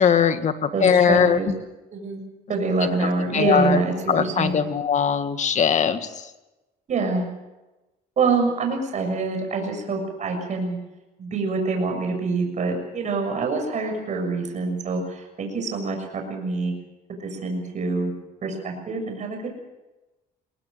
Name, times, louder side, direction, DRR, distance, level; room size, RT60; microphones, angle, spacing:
voice 1, 0.0-1.4 3.0-3.8 4.1-6.3, left 7 dB, 45° left, 10 dB, 1.8 m, -20 dB
voice 2, 0.7-1.5 1.9-2.2 2.5-4.6 6.9-7.3 8.2-10.8 11.2-16.7 17.2-18.1 18.4-19.5, right 3 dB, 45° right, 3 dB, 6.7 m, -25 dB
22.5 x 18.5 x 7.8 m, 1.0 s
cardioid pair, 110°, 17 cm